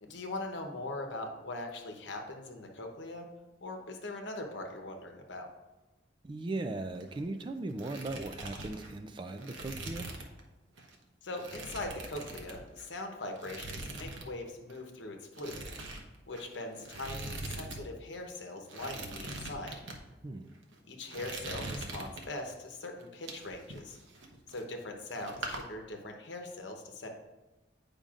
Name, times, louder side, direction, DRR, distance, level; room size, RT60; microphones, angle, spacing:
voice 1, 0.0-3.3 3.6-5.5 11.2-15.7 16.3-19.8 20.9-24.0 24.5-27.1, left 2 dB, 75° left, 3 dB, 0.9 m, -41 dB
voice 2, 6.2-10.1 20.2-20.5, right 2 dB, 25° right, 7 dB, 0.3 m, -38 dB
sound 1, 6.9-7.4 7.7-10.4 10.8-10.9 11.4-12.9 13.4-14.3 14.5-14.8 15.3-17.8 18.1-18.2 18.6-20.0 20.5-20.8 21.1-22.5 23.0-24.9 25.1-25.6, right 2 dB, 85° right, 0.9 m, -42 dB
8.7 x 5.2 x 2.5 m, 1.1 s
head